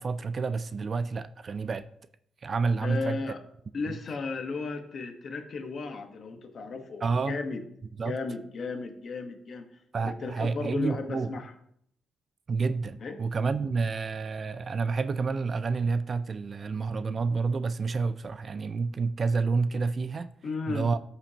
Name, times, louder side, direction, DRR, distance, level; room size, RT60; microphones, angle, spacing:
voice 1, 0.0-1.9 2.4-3.2 3.9-4.0 7.0-7.4 8.0-8.2 9.9-11.3 12.5-20.4 20.7-21.0, right 4 dB, 35° right, 0.3 m, -29 dB
voice 2, 2.8-3.4 3.7-7.6 8.0-9.7 10.0-11.5 13.0-13.2 20.4-20.9, left 4 dB, 45° left, 1.1 m, -34 dB
13.5 x 5.2 x 2.9 m
cardioid pair, 130°, 0 cm